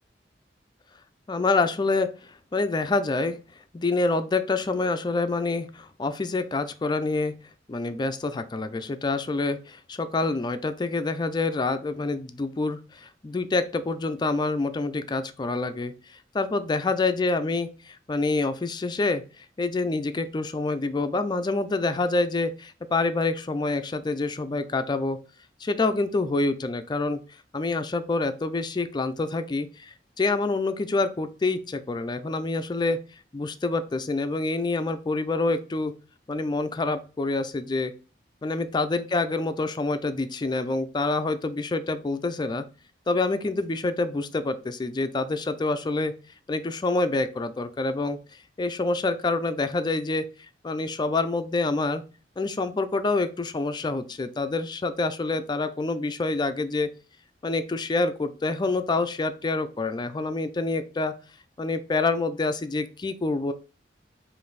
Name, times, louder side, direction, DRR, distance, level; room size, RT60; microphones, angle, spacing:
voice 1, 1.3-3.4 3.7-7.3 7.7-25.2 25.6-27.2 27.5-33.0 33.3-35.9 36.3-37.9 38.4-42.6 43.1-46.1 46.5-48.2 48.6-50.3 50.6-52.0 52.4-56.9 57.4-61.1 61.6-63.5, left 3 dB, 25° left, 10 dB, 0.4 m, -27 dB
5.2 x 2.6 x 3.9 m, 0.34 s
head